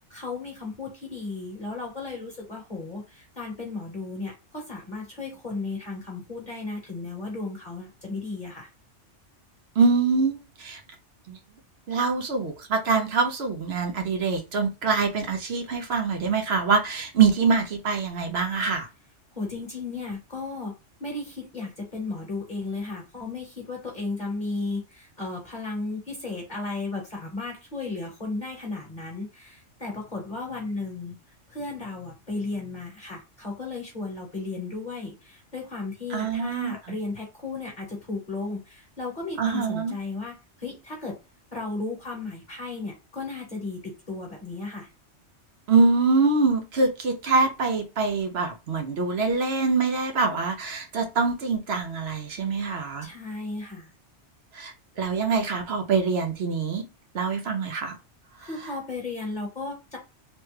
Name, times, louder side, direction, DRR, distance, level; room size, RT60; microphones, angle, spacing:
voice 1, 0.1-8.7 19.3-20.7 21.0-31.2 31.5-41.2 41.5-44.9 52.3-52.5 53.0-53.9 58.4-60.0, left 3 dB, 40° left, 1.1 m, -35 dB
voice 2, 9.8-10.8 11.3-11.4 11.9-18.9 36.1-36.8 39.4-39.9 45.7-53.1 54.5-56.8 57.1-58.0, right 4 dB, 60° right, 0.9 m, -24 dB
3.2 x 2.2 x 3.2 m
omnidirectional pair, 1.3 m